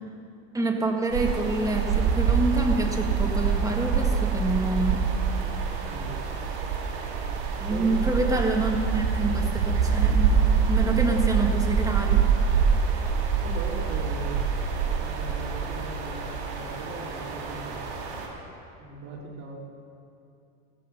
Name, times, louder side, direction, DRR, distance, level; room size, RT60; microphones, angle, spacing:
voice 1, 0.5-5.0 7.6-10.4 10.7-12.3, right 2 dB, 10° right, 1 dB, 1.8 m, -27 dB
sound 1, 1.1-18.3, right 6 dB, 80° right, 3.8 m, -25 dB
voice 2, 5.9-6.3 7.7-8.5 13.4-14.4 15.0-17.8 18.8-19.6, right 2 dB, 55° right, -2 dB, 3.2 m, -39 dB
15.5 x 15.0 x 5.7 m, 2.6 s
supercardioid pair, 135°, 35 cm